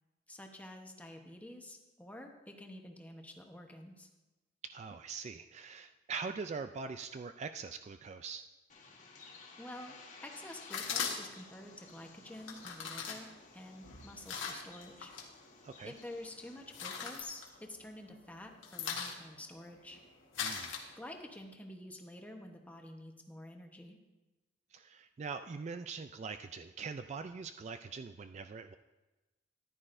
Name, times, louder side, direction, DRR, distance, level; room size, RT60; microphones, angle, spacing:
voice 1, 0.3-4.1 9.6-15.1 15.8-20.0 21.0-24.0, left 1 dB, 10° left, 3 dB, 1.0 m, -49 dB
voice 2, 4.6-8.5 15.6-15.9 20.4-20.7 24.7-28.8, right 5 dB, 35° right, 9 dB, 0.3 m, -43 dB
Bird, 8.7-17.2, left 4 dB, 40° left, 1.5 m, -56 dB
sound 1, 10.7-11.5 12.4-15.3 15.6-16.2 16.5-18.1 18.3-21.4, left 6 dB, 90° left, 1.5 m, -40 dB
14.0 x 11.0 x 2.6 m, 1.1 s
head